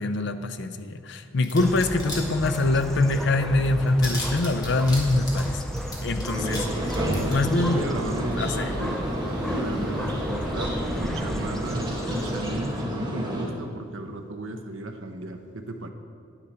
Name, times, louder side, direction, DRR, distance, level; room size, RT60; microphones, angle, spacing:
voice 1, 0.0-5.6 6.0-6.6 7.3-7.9 8.4-8.7, left 2 dB, 55° left, 9 dB, 0.6 m, -24 dB
sound 1, 1.4-2.2 2.4-3.1 3.4-3.5 3.7-6.6 6.9-7.3, left 1 dB, 20° left, 1.7 m, -36 dB
sound 2, 1.6-12.8, equal, ahead, 0.4 m, -34 dB
voice 2, 6.2-9.0 9.6-15.9, right 1 dB, 70° right, 5 dB, 0.9 m, -35 dB
sound 3, 6.3-13.5, equal, 20° right, 1.6 m, -30 dB
9.9 x 9.6 x 4.3 m, 2.2 s
head